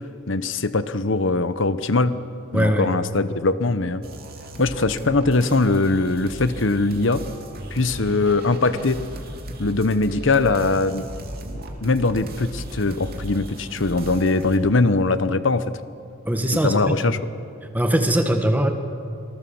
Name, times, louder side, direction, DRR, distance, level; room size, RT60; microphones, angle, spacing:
voice 1, 0.3-2.2 2.5-4.0 4.6-7.2 7.7-9.0 9.6-11.1 11.8-15.7 16.6-17.2, left 3 dB, 65° left, 13 dB, 1.0 m, -21 dB
voice 2, 2.5-2.9 16.2-17.2 17.7-18.7, equal, 10° right, 5 dB, 1.7 m, -21 dB
sound 1, 4.0-14.6, right 1 dB, 50° right, 2.8 m, -36 dB
27.0 x 19.0 x 7.2 m, 2.5 s
head